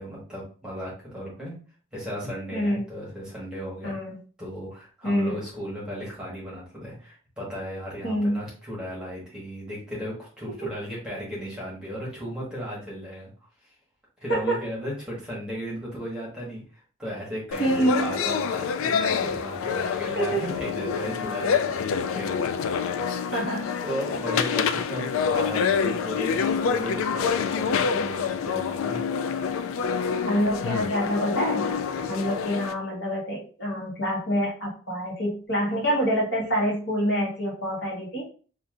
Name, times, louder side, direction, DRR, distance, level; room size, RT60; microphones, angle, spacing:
voice 1, 0.0-1.6 1.9-3.9 4.4-13.3 14.2-22.3 23.3-23.5 23.8-29.0 32.0-32.1, equal, 5° right, -6 dB, 1.4 m, -35 dB
voice 2, 2.5-2.8 3.8-4.2 5.0-5.4 8.0-8.4 10.6-10.7 14.3-14.6 17.6-18.2 20.1-20.4 23.3-23.8 30.2-31.7 32.1-38.2, equal, 50° left, -4 dB, 1.3 m, -26 dB
sound 1, 17.5-32.7, left 6 dB, 80° left, 0.3 m, -27 dB
5.4 x 2.5 x 2.5 m, 0.40 s
head